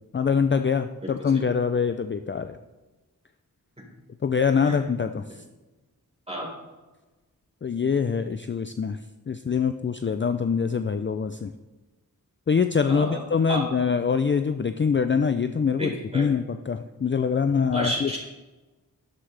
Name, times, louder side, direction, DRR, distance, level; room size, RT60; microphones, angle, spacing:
voice 1, 0.1-2.6 4.2-5.4 7.6-9.0 9.3-11.5 12.5-18.1, left 6 dB, 35° left, 9 dB, 0.4 m, -24 dB
voice 2, 12.9-13.2 13.5-13.6 15.8-16.2 17.7-18.2, right 1 dB, 15° right, -3 dB, 4.3 m, -30 dB
12.0 x 11.5 x 3.4 m, 1.2 s
wide cardioid pair, 90°, 36 cm